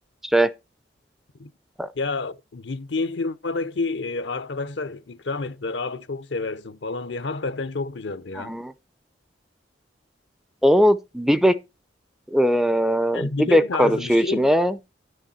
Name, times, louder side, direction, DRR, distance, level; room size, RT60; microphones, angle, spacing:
voice 1, 1.9-8.6 13.1-14.5, left 3 dB, 70° left, 0.7 m, -29 dB
voice 2, 8.4-8.7 10.6-11.5 12.3-14.7, equal, ahead, 0.4 m, -19 dB
11.0 x 6.4 x 4.3 m
head